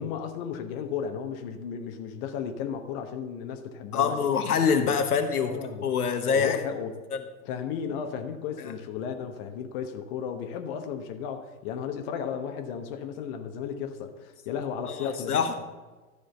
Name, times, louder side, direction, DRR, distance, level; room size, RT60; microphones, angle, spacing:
voice 1, 0.0-4.2 4.6-4.7 5.5-5.8 6.3-6.9 7.4-15.4, left 7 dB, 40° left, 6 dB, 1.1 m, -34 dB
voice 2, 3.9-6.6 8.6-8.7 14.9-15.6, left 6 dB, 75° left, 7 dB, 1.1 m, -25 dB
13.0 x 5.0 x 7.0 m, 1.3 s
figure-of-eight pair, 105°, 45 cm